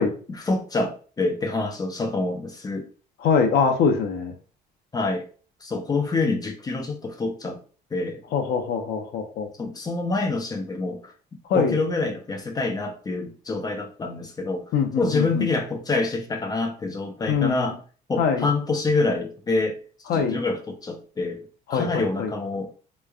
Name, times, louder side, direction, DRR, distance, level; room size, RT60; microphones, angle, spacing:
voice 1, 0.0-2.9 4.9-5.2 5.6-7.6 7.9-8.2 9.6-11.1 11.5-14.7 15.0-17.8 18.1-19.8 20.1-21.4 21.7-22.7, left 3 dB, 20° left, 4 dB, 0.5 m, -26 dB
voice 2, 3.2-4.3 8.3-9.5 11.5-11.8 14.7-15.5 17.3-17.7 18.2-18.5 20.1-20.4 21.7-22.3, left 6 dB, 70° left, 4 dB, 0.7 m, -23 dB
3.0 x 2.2 x 2.3 m, 0.39 s
cardioid pair, 110°, 17 cm